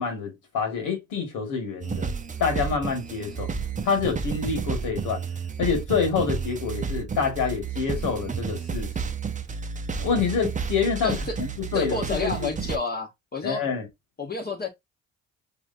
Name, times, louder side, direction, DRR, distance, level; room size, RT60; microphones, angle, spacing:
voice 1, 0.0-2.1 2.4-3.5 3.8-5.2 5.6-8.9 10.0-12.5 13.4-13.9, left 5 dB, 85° left, 1.9 m, -27 dB
sound 1, 1.8-12.8, right 5 dB, 25° right, 0.7 m, -31 dB
voice 2, 11.0-11.3 11.7-13.6 14.2-14.7, left 3 dB, 30° left, 1.0 m, -30 dB
4.9 x 3.0 x 2.6 m
cardioid pair, 90°, 30 cm